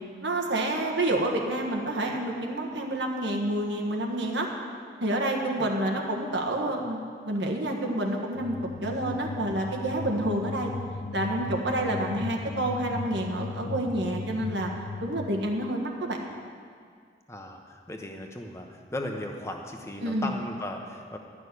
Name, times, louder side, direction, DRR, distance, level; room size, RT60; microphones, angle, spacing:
voice 1, 0.2-4.5 5.0-7.0 7.3-8.5 8.8-10.7 11.1-14.7 15.0-16.2 20.0-20.3, right 1 dB, 85° right, 1 dB, 1.4 m, -28 dB
sound 1, 8.4-15.7, left 3 dB, 45° left, 0.5 m, -37 dB
voice 2, 17.3-21.2, left 1 dB, 15° left, 2 dB, 1.0 m, -37 dB
12.5 x 6.3 x 9.7 m, 2.1 s
head